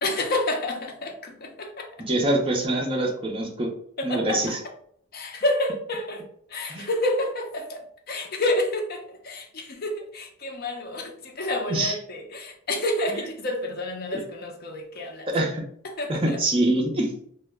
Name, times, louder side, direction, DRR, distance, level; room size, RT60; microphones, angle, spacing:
voice 1, 0.0-1.9 4.0-4.4 5.1-6.2 6.5-15.3 15.8-16.4, left 1 dB, 45° left, 0.5 m, -29 dB
voice 2, 2.1-3.7 4.0-4.6 6.7-6.9 11.7-12.0 13.1-13.2 14.1-14.2 15.3-15.6 16.1-17.1, right 1 dB, 25° right, 0.5 m, -24 dB
2.1 x 2.0 x 3.3 m
head